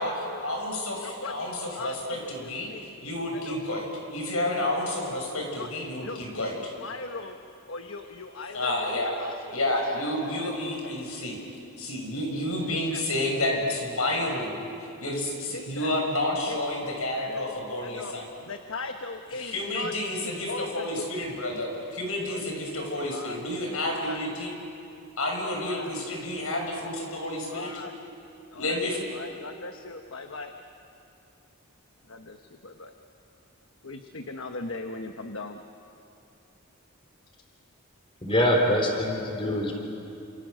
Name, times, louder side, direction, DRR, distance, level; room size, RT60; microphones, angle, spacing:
voice 1, 0.0-6.7 8.5-9.2 9.5-11.4 11.8-14.7 15.0-18.2 19.4-24.5 25.2-27.7 28.5-29.0, left 1 dB, 85° left, 1 dB, 6.2 m, -30 dB
voice 2, 1.0-2.9 3.3-3.6 4.5-4.8 5.5-5.7 6.0-7.4 7.7-9.4 9.7-10.5 12.6-13.0 15.4-15.9 16.4-18.1 18.4-19.9 20.2-21.1 22.3-22.6 23.1-23.4 23.9-24.2 25.6-25.9 27.5-27.9 28.5-28.8 29.1-30.5 32.1-32.9 33.8-35.6, left 3 dB, 65° left, 5 dB, 1.2 m, -39 dB
voice 3, 38.2-39.8, equal, 25° left, 2 dB, 3.7 m, -24 dB
29.5 x 27.5 x 6.5 m, 2.7 s
head